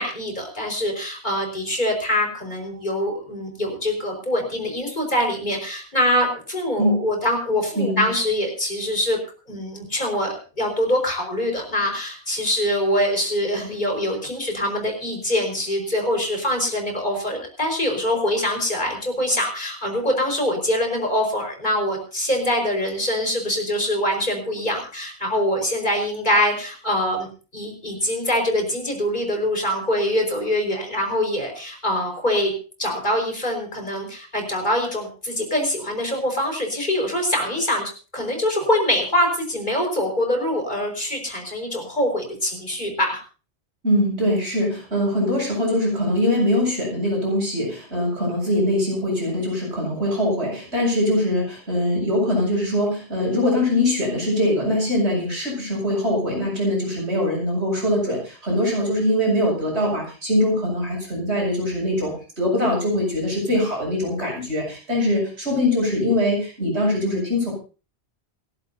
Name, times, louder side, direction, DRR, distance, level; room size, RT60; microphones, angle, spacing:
voice 1, 0.0-9.2 9.5-27.3 27.5-32.5 32.8-43.2, left 1 dB, 45° left, 3 dB, 5.3 m, -24 dB
voice 2, 7.8-8.1 43.8-67.5, left 1 dB, 80° right, -1 dB, 7.9 m, -22 dB
27.5 x 12.0 x 2.8 m, 0.36 s
omnidirectional pair, 1.1 m